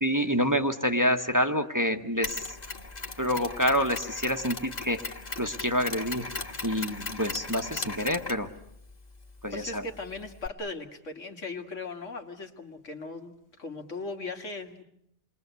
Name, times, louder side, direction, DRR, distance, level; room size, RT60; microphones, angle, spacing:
voice 1, 0.0-2.4 3.2-6.3 6.6-8.5 9.4-9.8, equal, 15° right, 5 dB, 1.0 m, -27 dB
Mechanisms, 2.2-10.5, left 3 dB, 35° left, 1.7 m, -39 dB
voice 2, 9.5-13.3 13.6-14.8, left 3 dB, 85° left, 4 dB, 2.4 m, -38 dB
28.5 x 22.0 x 8.2 m, 0.74 s
omnidirectional pair, 1.2 m